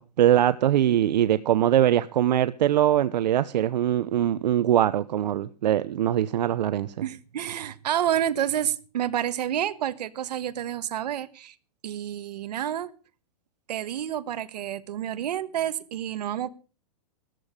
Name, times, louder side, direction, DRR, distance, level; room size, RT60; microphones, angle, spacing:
voice 1, 0.0-6.9, right 11 dB, 90° right, 0.8 m, -22 dB
voice 2, 7.0-11.5 11.8-12.9 13.7-16.5, right 11 dB, 70° right, 1.3 m, -29 dB
14.0 x 13.5 x 5.1 m
supercardioid pair, 175°, 21 cm